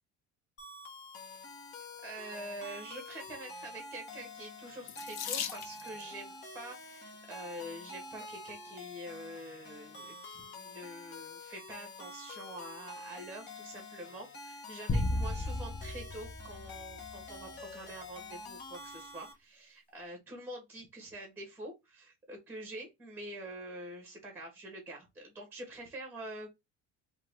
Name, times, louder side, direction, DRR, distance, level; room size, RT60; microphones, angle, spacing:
sound 1, 0.6-19.3, left 2 dB, 35° left, 1.2 m, -47 dB
voice 1, 2.0-26.5, right 1 dB, 5° right, 1.3 m, -46 dB
Water tap faucet / Sink (filling or washing), 4.9-6.1 7.1-7.5 8.2-8.3 8.7-8.8, left 9 dB, 60° left, 0.7 m, -39 dB
sound 2, 14.9-17.4, left 2 dB, 15° left, 0.5 m, -34 dB
4.6 x 2.4 x 3.4 m
cardioid pair, 160°, 30 cm